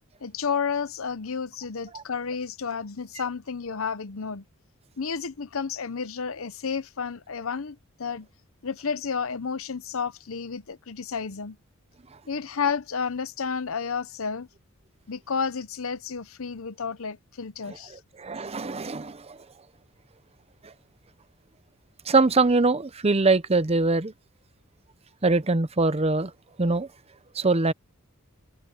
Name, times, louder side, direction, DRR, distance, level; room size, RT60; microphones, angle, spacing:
voice 1, 0.2-4.4 5.0-8.3 8.6-11.6 12.3-14.5 15.1-18.0, left 5 dB, 75° left, 0.8 m, -31 dB
voice 2, 18.2-19.4 20.6-20.7 22.1-24.1 25.2-26.3 26.6-26.9 27.3-27.7, right 3 dB, 30° right, 0.8 m, -23 dB
head